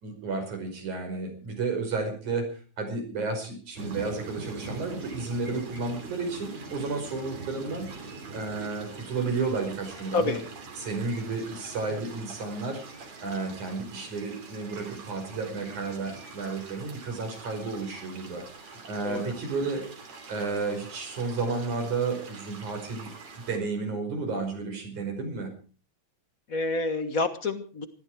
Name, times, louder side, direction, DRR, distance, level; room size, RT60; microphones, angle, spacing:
voice 1, 0.0-2.5 2.8-7.9 8.3-10.4 10.8-12.8 13.2-19.8 20.3-23.1 23.5-25.5, right 4 dB, 85° right, 5 dB, 6.7 m, -32 dB
sound 1, 3.7-23.6, right 3 dB, 65° right, 4.4 m, -44 dB
voice 2, 26.5-27.9, left 3 dB, 40° left, 9 dB, 1.2 m, -28 dB
20.0 x 14.5 x 4.8 m, 0.39 s
omnidirectional pair, 3.3 m